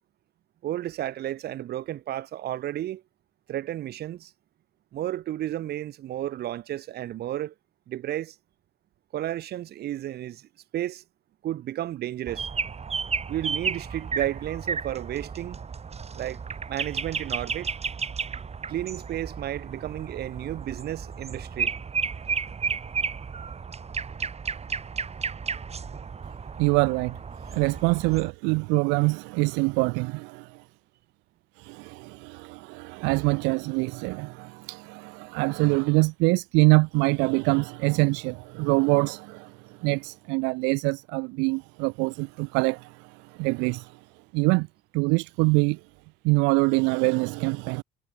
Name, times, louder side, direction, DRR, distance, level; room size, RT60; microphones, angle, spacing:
voice 1, 0.6-3.0 3.5-4.3 4.9-7.5 7.9-8.3 9.1-11.0 11.4-12.5 13.3-15.6 16.1-16.4 16.7-17.7 18.7-21.7, right 13 dB, 60° right, 1.1 m, -32 dB
sound 1, 12.3-28.3, right 6 dB, 35° right, 2.3 m, -33 dB
voice 2, 26.6-27.2 27.5-30.5 31.6-39.5 39.8-43.9 44.3-44.7 44.9-45.8 46.2-47.8, right 30 dB, 80° right, 0.4 m, -24 dB
supercardioid pair, 65°, 19 cm